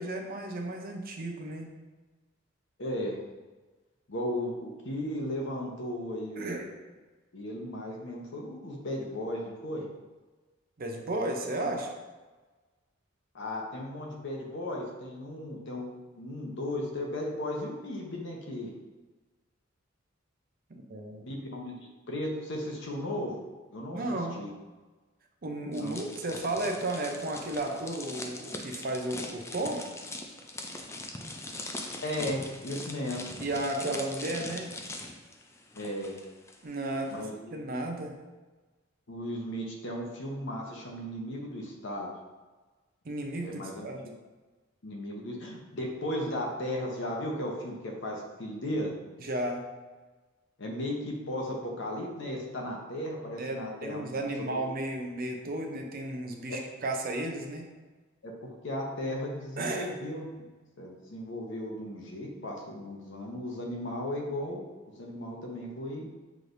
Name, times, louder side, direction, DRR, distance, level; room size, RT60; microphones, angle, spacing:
voice 1, 0.0-1.7 6.4-6.7 10.8-11.9 20.7-21.3 23.9-24.4 25.4-29.9 33.4-34.7 36.6-37.3 37.5-38.1 43.0-44.0 49.2-49.6 53.4-57.7 59.6-59.9, right 1 dB, 45° right, 2 dB, 0.6 m, -33 dB
voice 2, 2.8-3.2 4.1-6.7 7.3-9.9 13.3-18.7 21.2-21.7 22.1-23.4 23.7-24.0 24.4-24.5 25.8-26.0 32.0-33.3 35.7-36.2 37.1-37.7 39.1-42.1 43.4-43.9 44.8-49.0 50.6-54.5 56.5-56.6 58.2-60.4 60.8-64.6 65.0-66.1, left 1 dB, 65° left, 0 dB, 0.8 m, -36 dB
sound 1, 25.7-36.5 36.8-37.1, left 2 dB, 15° left, 0.3 m, -41 dB
6.0 x 3.3 x 2.6 m, 1.3 s
head